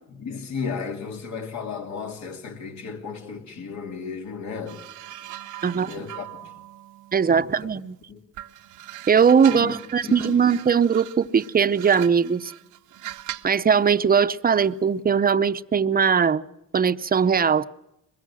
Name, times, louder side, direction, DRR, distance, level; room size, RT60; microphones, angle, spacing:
voice 1, 0.1-4.8 5.7-6.5 7.2-7.6 8.1-8.2 9.5-9.7 10.0-10.5, left 5 dB, 65° left, 3.0 m, -34 dB
sound 1, 4.7-7.9 8.3-13.6 14.6-14.8, right 13 dB, 85° right, 0.9 m, -41 dB
voice 2, 7.1-8.0 9.1-12.5 13.4-16.4 16.7-17.6, right 6 dB, 30° right, 0.8 m, -20 dB
22.5 x 21.5 x 6.3 m
cardioid pair, 90°, 30 cm